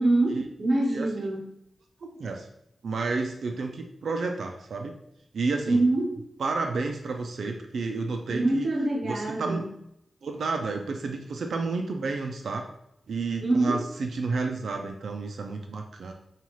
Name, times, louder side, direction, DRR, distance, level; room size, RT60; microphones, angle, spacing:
voice 1, 0.0-1.4 5.7-6.2 8.3-9.7 13.4-13.8, right 2 dB, 50° right, -1 dB, 0.9 m, -25 dB
voice 2, 2.0-2.5 2.8-5.0 5.3-5.8 6.4-8.7 9.0-9.6 10.2-12.7 13.1-16.1, right 3 dB, 75° right, 4 dB, 0.4 m, -31 dB
5.4 x 2.4 x 3.1 m, 0.79 s
wide cardioid pair, 140°, 0 cm